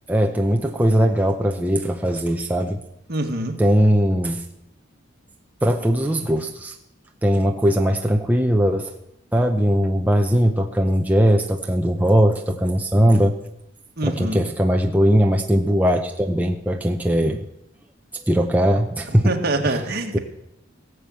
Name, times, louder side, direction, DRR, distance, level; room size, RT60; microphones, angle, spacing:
voice 1, 0.1-2.8 3.6-4.4 5.6-6.8 7.2-8.9 9.3-13.4 14.0-17.5 18.3-19.3 19.7-19.8 20.1-20.2, equal, 10° right, 3 dB, 0.7 m, -19 dB
voice 2, 3.1-3.6 14.0-14.4 19.2-20.2, right 2 dB, 50° right, 4 dB, 1.7 m, -24 dB
18.0 x 7.2 x 7.8 m, 0.83 s
head